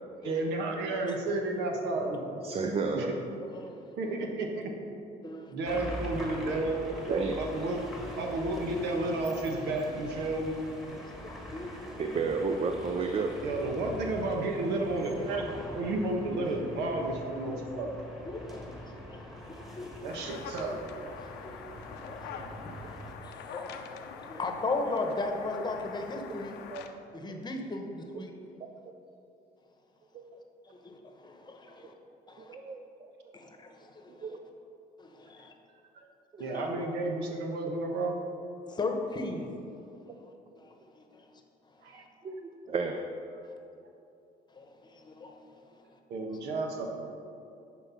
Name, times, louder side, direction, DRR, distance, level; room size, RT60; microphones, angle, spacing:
voice 1, 0.2-2.2 2.9-3.1 4.0-4.7 5.5-6.8 7.4-7.8 8.2-10.6 13.4-17.9 20.0-20.8 36.4-38.1 41.8-42.0 46.1-47.1, right 2 dB, 85° right, 1 dB, 1.3 m, -32 dB
voice 2, 2.4-3.2 7.1-7.4 12.0-13.3 26.7-26.8 27.3-27.4 30.1-30.2 32.4-32.8 34.2-34.4 40.1-40.2 42.2-43.0, right 4 dB, 35° right, 4 dB, 0.6 m, -31 dB
voice 3, 3.4-4.3 5.2-5.8 7.1-7.2 10.1-10.2 10.8-12.0 17.5-17.6 18.2-20.3 21.2-26.6 27.1-28.3 30.6-31.9 32.3-32.6 33.3-34.4 35.0-35.5 36.4-36.7 38.7-39.7 40.1-42.1 43.4-43.5 44.5-46.0, left 3 dB, 25° left, 3 dB, 1.0 m, -39 dB
sound 1, 5.6-23.2, equal, ahead, 1.5 m, -43 dB
sound 2, 20.1-26.9, left 7 dB, 85° left, 0.7 m, -45 dB
10.5 x 4.5 x 5.7 m, 2.6 s
cardioid pair, 110°, 17 cm